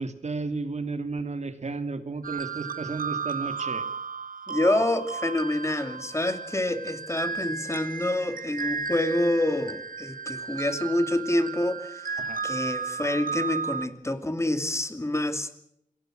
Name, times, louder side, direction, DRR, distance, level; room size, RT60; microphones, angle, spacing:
voice 1, 0.0-3.8 12.2-12.4, right 3 dB, 55° right, 9 dB, 2.5 m, -33 dB
sound 1, 2.2-13.9, right 5 dB, 90° right, 1.3 m, -34 dB
voice 2, 4.5-15.5, left 1 dB, 20° left, 9 dB, 2.5 m, -27 dB
27.0 x 17.5 x 6.4 m, 0.76 s
wide cardioid pair, 80°, 14 cm